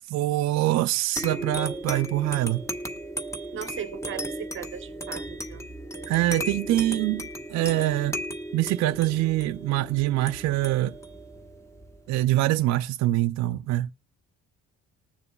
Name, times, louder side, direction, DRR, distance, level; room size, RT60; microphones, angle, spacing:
voice 1, 0.0-2.6 6.1-8.2 8.5-11.0 12.1-13.9, right 16 dB, 65° right, 0.4 m, -24 dB
sound 1, 1.2-12.2, equal, 10° left, 1.2 m, -36 dB
voice 2, 3.5-5.7, right 8 dB, 45° right, 0.8 m, -38 dB
20.0 x 6.9 x 2.2 m
cardioid pair, 115°, 30 cm